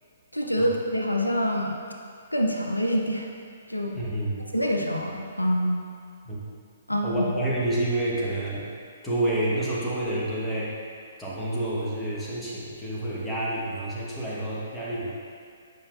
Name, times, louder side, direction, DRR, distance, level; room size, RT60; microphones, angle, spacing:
voice 1, 0.3-1.8 2.3-3.3 3.7-4.0 4.5-5.8 6.9-7.3, equal, 90° left, 1 dB, 0.6 m, -26 dB
voice 2, 3.9-4.5 6.2-6.4 7.0-8.7 9.0-10.7 11.2-15.1, right 1 dB, 5° left, -8 dB, 1.4 m, -28 dB
8.9 x 5.4 x 2.6 m, 2.2 s
figure-of-eight pair, 125°, 0 cm